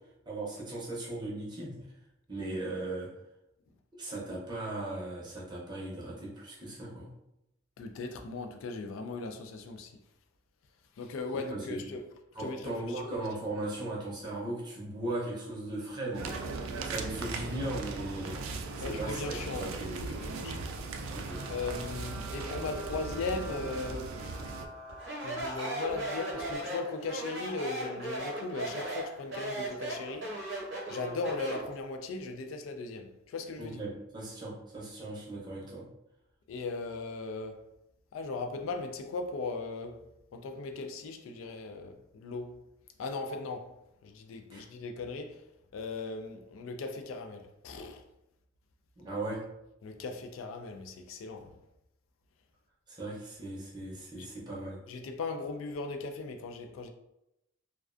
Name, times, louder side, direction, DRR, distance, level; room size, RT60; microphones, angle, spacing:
voice 1, 0.3-1.8 2.3-3.1 4.0-7.1 11.5-11.8 12.4-18.4 18.8-19.2 19.6-20.3 21.1-21.6 33.6-35.9 44.5-44.6 49.0-49.4 52.9-54.8, right 2 dB, 20° right, 0.6 m, -38 dB
voice 2, 7.8-10.0 11.0-12.1 12.4-13.2 18.8-20.7 21.5-24.4 25.2-30.3 30.9-33.8 36.5-37.7 38.1-40.1 40.3-42.6 43.0-43.7 44.0-45.4 45.7-48.0 49.8-51.6 54.2-54.3 54.9-56.9, left 3 dB, 75° left, 0.3 m, -38 dB
sound 1, 16.1-24.7, right 3 dB, 85° right, 0.3 m, -38 dB
protoplasto jędrzej lichota, 21.3-26.6, right 2 dB, 55° left, 0.9 m, -47 dB
Speech, 25.0-31.7, right 1 dB, 60° right, 0.8 m, -37 dB
2.3 x 2.2 x 2.4 m
head